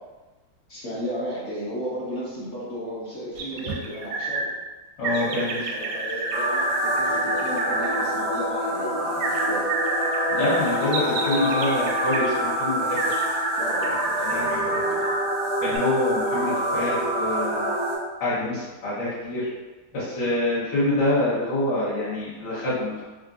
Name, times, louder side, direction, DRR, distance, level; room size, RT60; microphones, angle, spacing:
voice 1, 0.7-4.5 5.0-9.7 13.6-15.0, equal, 55° left, -8 dB, 0.9 m, -34 dB
sound 1, 3.4-4.4 5.0-8.1 9.2-12.3 13.0-15.2 15.7-15.8, right 3 dB, 75° right, 1.0 m, -29 dB
voice 2, 5.0-5.6 10.3-13.2 14.2-14.6 15.6-17.7 18.2-19.5 19.9-23.0, left 1 dB, 70° left, -12 dB, 1.9 m, -26 dB
sound 2, 6.3-17.9, equal, 40° right, 0.4 m, -26 dB
4.4 x 2.4 x 2.5 m, 1.2 s
omnidirectional pair, 2.1 m